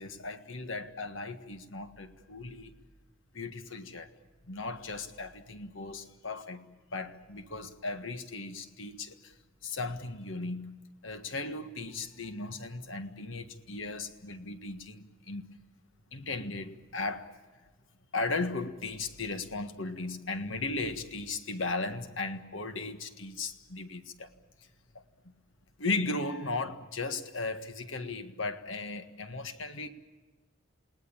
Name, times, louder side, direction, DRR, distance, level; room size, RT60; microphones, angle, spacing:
voice 1, 0.0-2.7 3.3-4.1 4.5-9.3 9.6-10.8 11.0-15.5 16.1-17.4 18.1-24.3 25.8-29.9, left 3 dB, 80° left, 1.7 m, -36 dB
28.5 x 19.0 x 8.7 m
head